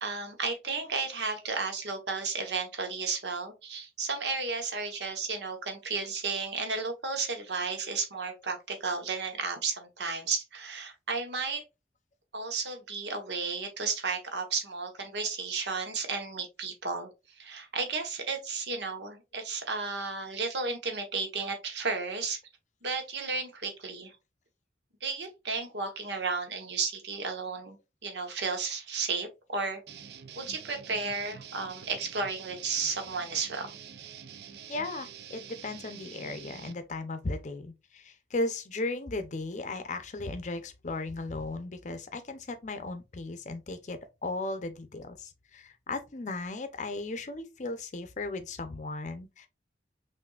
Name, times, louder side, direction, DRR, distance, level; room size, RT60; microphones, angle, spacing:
voice 1, 0.0-11.6 12.3-17.1 17.4-22.4 22.8-24.2 25.0-27.8 28.0-29.8 30.3-33.8, right 4 dB, 80° right, 1.1 m, -33 dB
sound 1, 29.9-36.7, right 8 dB, 65° right, 0.4 m, -47 dB
voice 2, 34.7-49.5, left 2 dB, 45° left, 0.6 m, -36 dB
5.8 x 2.6 x 2.3 m
head